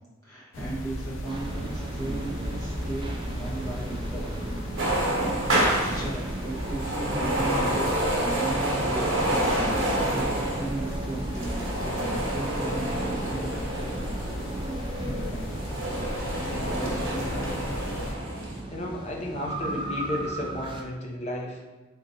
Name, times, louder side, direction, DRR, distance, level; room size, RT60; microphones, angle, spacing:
voice 1, 0.2-4.4 5.4-14.0 14.6-15.5, right 2 dB, 20° left, -8 dB, 1.2 m, -37 dB
sound 1, 0.5-18.1, left 1 dB, 85° left, 0.5 m, -36 dB
sound 2, 1.2-20.8, right 2 dB, 25° right, 0.4 m, -36 dB
sound 3, 4.8-14.6 15.2-18.6, right 1 dB, 85° right, 0.9 m, -28 dB
voice 2, 16.4-17.6 18.7-21.6, left 1 dB, 35° left, 0 dB, 0.5 m, -34 dB
3.7 x 2.8 x 2.7 m, 1.2 s
head